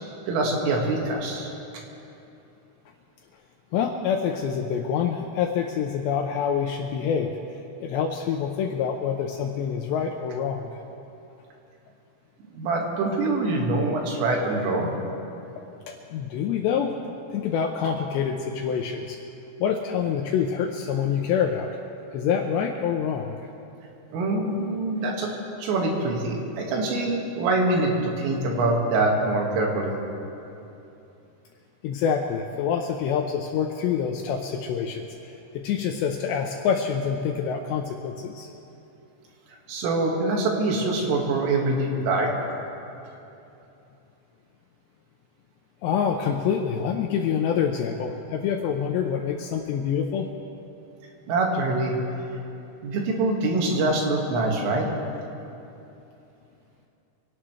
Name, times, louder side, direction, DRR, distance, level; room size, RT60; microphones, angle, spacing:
voice 1, 0.3-1.5 12.5-14.9 24.1-30.0 39.7-42.3 51.3-52.0 52.8-54.9, right 2 dB, 85° right, 0 dB, 4.5 m, -24 dB
voice 2, 3.7-7.3 7.8-10.7 15.9-19.2 19.6-21.7 22.1-23.4 31.8-38.5 45.8-50.3, left 7 dB, 90° left, 3 dB, 2.5 m, -26 dB
25.5 x 17.5 x 3.3 m, 2.8 s
omnidirectional pair, 5.7 m